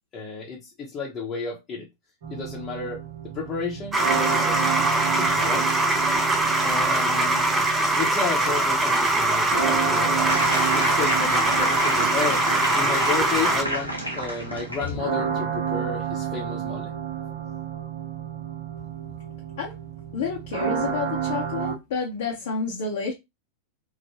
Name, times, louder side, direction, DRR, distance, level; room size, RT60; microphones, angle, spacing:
voice 1, 0.1-1.9 2.3-3.0 3.3-5.8 6.6-16.9, left 4 dB, 25° left, 0.8 m, -32 dB
sound 1, 2.2-21.7, right 8 dB, 55° right, 0.8 m, -31 dB
sound 2, 3.9-13.6, right 2 dB, 15° right, 0.6 m, -22 dB
sound 3, 10.3-15.0, equal, 85° right, 0.9 m, -29 dB
voice 2, 20.1-23.1, left 5 dB, 55° left, 0.7 m, -29 dB
3.1 x 2.2 x 2.9 m
figure-of-eight pair, 90°, 0 cm